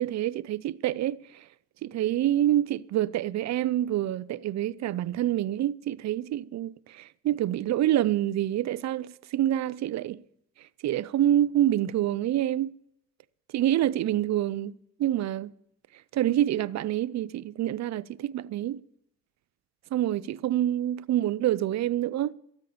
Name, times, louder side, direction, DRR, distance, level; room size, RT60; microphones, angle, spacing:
voice 1, 0.0-1.5 1.8-10.2 10.8-12.7 13.5-15.5 16.1-18.8 19.9-22.3, right 12 dB, 65° right, 0.5 m, -27 dB
14.0 x 8.9 x 7.0 m
cardioid pair, 90°, 30 cm